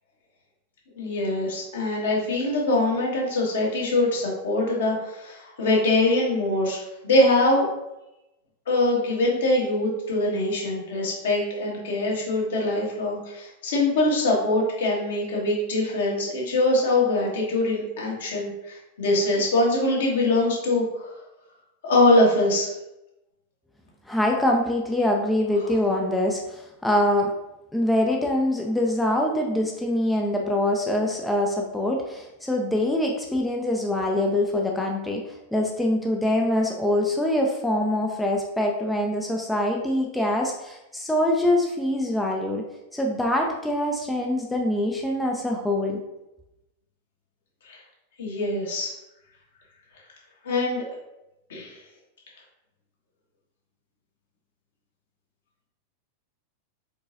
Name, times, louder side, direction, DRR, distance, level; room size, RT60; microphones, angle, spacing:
voice 1, 1.0-7.7 8.7-21.1 21.8-22.7 47.6-47.8 48.2-48.9 50.4-50.8 51.5-51.8, left 2 dB, 60° left, -3 dB, 1.5 m, -23 dB
voice 2, 24.1-27.3 27.7-42.6 42.9-46.0, left 1 dB, 5° left, 0 dB, 0.5 m, -24 dB
4.6 x 4.0 x 2.6 m, 0.92 s
figure-of-eight pair, 90°, 0 cm